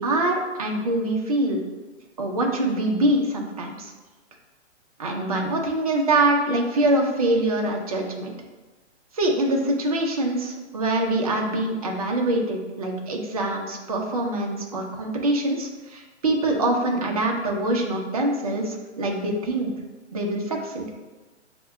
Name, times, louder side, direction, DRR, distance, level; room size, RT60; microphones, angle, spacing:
voice 1, 0.0-1.6 2.2-3.9 5.0-8.3 9.1-19.7 20.1-20.9, right 1 dB, 35° right, 1 dB, 0.4 m, -24 dB
4.6 x 2.1 x 3.4 m, 1.2 s
hypercardioid pair, 170°, 35 cm